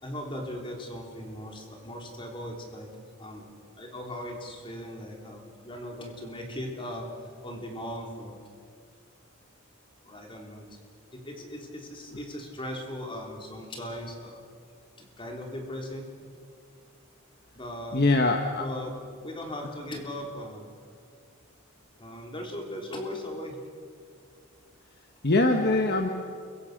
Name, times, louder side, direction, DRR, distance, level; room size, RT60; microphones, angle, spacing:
voice 1, 0.0-2.9 3.2-3.5 3.8-8.4 10.0-10.6 11.1-14.4 15.0-16.1 17.5-18.0 18.6-18.9 19.2-20.7 22.0-23.6, left 1 dB, 25° left, 1 dB, 3.6 m, -38 dB
voice 2, 17.9-18.6 25.2-26.1, left 2 dB, 45° left, 4 dB, 1.4 m, -22 dB
29.0 x 23.0 x 6.7 m, 2.2 s
head